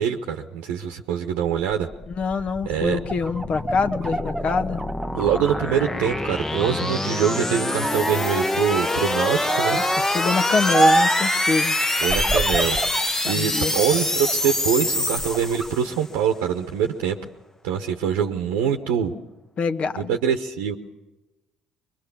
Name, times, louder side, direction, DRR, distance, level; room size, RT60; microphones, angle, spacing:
voice 1, 0.0-1.9 2.6-3.0 5.1-9.8 12.0-12.8 13.1-17.2 17.6-19.1 20.0-20.8, right 8 dB, 75° right, 5 dB, 1.1 m, -24 dB
sound 1, 1.9-16.0, left 1 dB, 15° left, 1.0 m, -25 dB
voice 2, 2.1-4.8 9.7-11.8 13.2-13.7 19.6-20.2, left 5 dB, 45° left, 10 dB, 1.3 m, -25 dB
sound 2, 2.9-6.2 6.5-7.4 7.8-8.5 9.4-10.0 10.7-11.3 12.0-13.1 13.6-14.5 15.0-15.7, right 3 dB, 15° right, 1.0 m, -26 dB
23.5 x 22.0 x 7.1 m, 1.1 s
hypercardioid pair, 55°, 3 cm